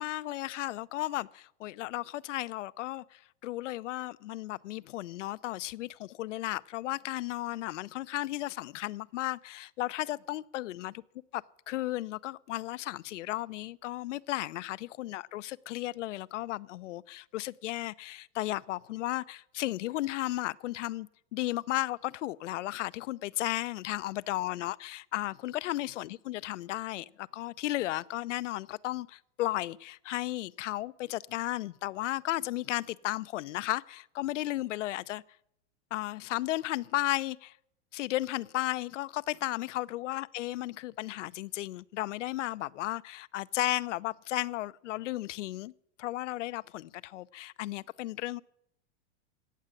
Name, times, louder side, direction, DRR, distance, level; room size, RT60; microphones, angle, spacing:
voice 1, 0.0-11.0 11.3-35.2 35.9-37.6 37.9-45.7 46.0-48.4, left 16 dB, 85° left, 0.7 m, -34 dB
17.0 x 7.7 x 9.7 m
supercardioid pair, 145°, 35 cm